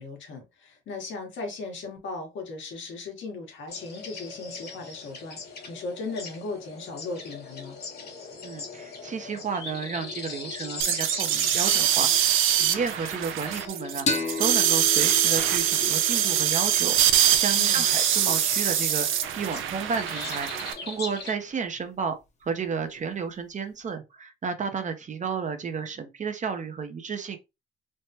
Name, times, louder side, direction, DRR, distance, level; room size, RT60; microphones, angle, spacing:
voice 1, 0.0-5.4 5.7-7.8 17.5-17.9, left 3 dB, 75° left, 1.3 m, -37 dB
sound 1, 3.7-21.3, left 4 dB, 55° left, 1.3 m, -40 dB
voice 2, 8.4-22.1 22.4-27.4, right 5 dB, 40° right, 0.6 m, -32 dB
sound 2, 10.8-20.7, right 11 dB, 85° right, 0.5 m, -23 dB
sound 3, 14.1-17.4, left 3 dB, 35° left, 0.8 m, -33 dB
3.3 x 2.1 x 2.8 m
cardioid pair, 90°, 20 cm